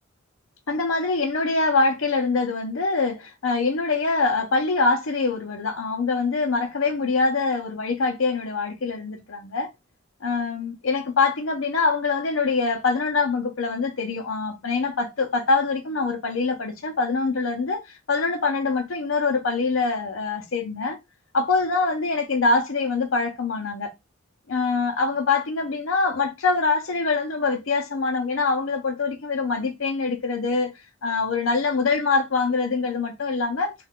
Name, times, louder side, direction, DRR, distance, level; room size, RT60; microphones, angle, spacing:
voice 1, 0.7-9.7 10.2-21.0 21.3-23.9 24.5-33.7, left 4 dB, 75° left, 0.6 m, -24 dB
2.4 x 2.3 x 3.5 m
head